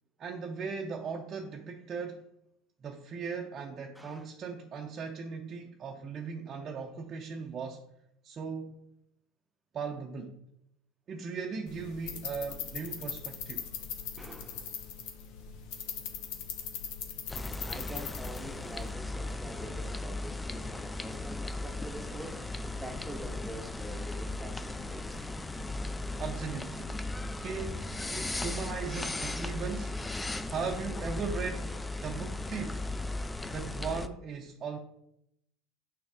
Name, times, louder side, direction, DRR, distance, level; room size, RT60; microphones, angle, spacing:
voice 1, 0.2-2.2 2.8-7.8 8.2-8.8 9.7-10.4 11.1-13.7 25.9-30.0 30.5-31.8 32.0-32.9 33.5-34.8, right 5 dB, 35° right, 1 dB, 0.6 m, -38 dB
voice 2, 3.9-4.3 14.2-14.8 17.6-25.2 31.0-31.1, right 1 dB, 5° right, 4 dB, 1.0 m, -46 dB
sound 1, 11.7-18.9, left 7 dB, 65° left, 0.9 m, -40 dB
sound 2, 17.3-34.1, left 2 dB, 10° left, 0.4 m, -37 dB
6.2 x 4.2 x 3.5 m, 0.78 s
hypercardioid pair, 95°, 0 cm